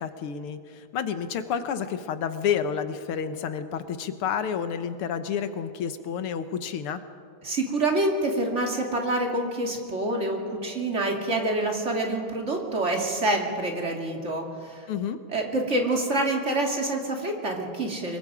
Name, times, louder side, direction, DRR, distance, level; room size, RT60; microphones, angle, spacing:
voice 1, 0.0-7.0 14.9-15.2, left 7 dB, 85° left, 10 dB, 2.0 m, -30 dB
voice 2, 7.4-14.8 15.3-18.2, right 2 dB, 35° right, 1 dB, 2.6 m, -27 dB
24.5 x 22.5 x 5.0 m, 2.2 s
omnidirectional pair, 2.4 m